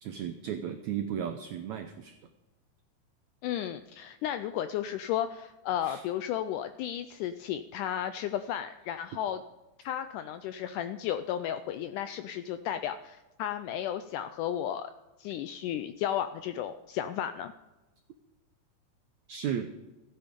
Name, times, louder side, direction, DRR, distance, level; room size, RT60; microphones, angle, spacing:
voice 1, 0.0-2.2 5.8-6.0 19.3-19.7, right 9 dB, 85° right, 8 dB, 1.6 m, -35 dB
voice 2, 3.4-9.4 9.8-14.9 15.2-17.5, left 10 dB, 90° left, 10 dB, 1.8 m, -33 dB
15.0 x 9.1 x 5.2 m, 1.1 s
omnidirectional pair, 4.2 m